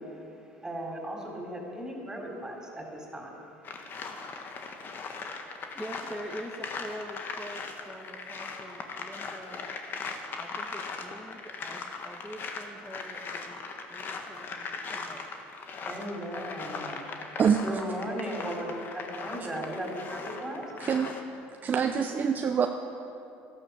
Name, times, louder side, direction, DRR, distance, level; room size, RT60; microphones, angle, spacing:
voice 1, 0.0-3.4 15.8-20.7, right 1 dB, 15° right, -1 dB, 3.9 m, -37 dB
sound 1, 3.6-21.2, left 4 dB, 45° left, 1.5 m, -39 dB
voice 2, 5.7-9.7 10.4-15.3, equal, 5° left, -1 dB, 1.5 m, -44 dB
voice 3, 20.8-21.1 21.6-22.7, right 7 dB, 40° right, 5 dB, 0.7 m, -25 dB
13.5 x 11.0 x 6.9 m, 2.8 s
hypercardioid pair, 80°, 5 cm